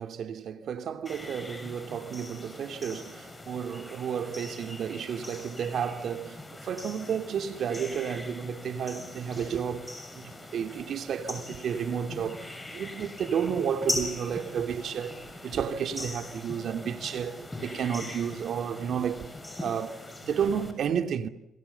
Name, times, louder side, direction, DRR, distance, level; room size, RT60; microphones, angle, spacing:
voice 1, 0.0-21.3, right 7 dB, 65° right, 2.7 m, -32 dB
sound 1, 1.0-20.7, left 2 dB, 15° left, 7.0 m, -41 dB
sound 2, 15.7-15.8 16.0-17.2 18.2-19.3 20.0-20.2 20.4-20.8, right 9 dB, 85° right, 4.3 m, -52 dB
28.0 x 27.0 x 7.0 m
cardioid pair, 90°, 0 cm